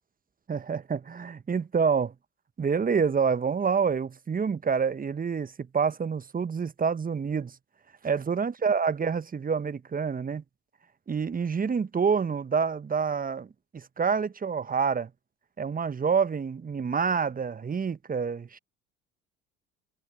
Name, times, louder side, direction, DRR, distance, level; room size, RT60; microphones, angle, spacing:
voice 1, 0.5-2.1 2.6-7.5 8.0-10.4 11.1-15.1 15.6-18.6, right 6 dB, 20° right, 1.1 m, -27 dB
figure-of-eight pair, 60°, 41 cm